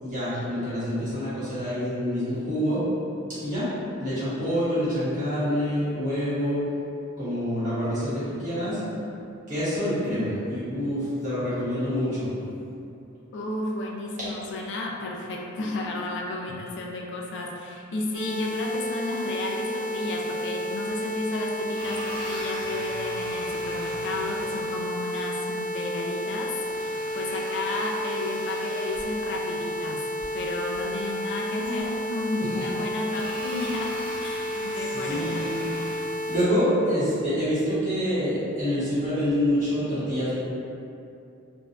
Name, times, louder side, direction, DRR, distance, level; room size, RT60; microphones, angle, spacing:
voice 1, 0.0-2.8 3.4-3.7 4.0-6.6 7.2-8.8 9.5-12.4 32.5-32.8 34.5-34.7 34.9-35.7 36.3-40.3, equal, 35° right, -12 dB, 1.4 m, -27 dB
voice 2, 13.3-30.0 30.3-33.9 34.2-35.5, left 2 dB, 55° left, -1 dB, 0.4 m, -32 dB
sound 1, 18.1-36.4, left 1 dB, 75° right, 0.6 m, -31 dB
sound 2, 20.9-21.0 21.6-24.8 26.6-29.2 30.1-30.3 30.7-30.8 31.6-32.2 33.0-35.9, equal, 20° left, 0.7 m, -40 dB
2.5 x 2.3 x 3.2 m, 2.6 s
head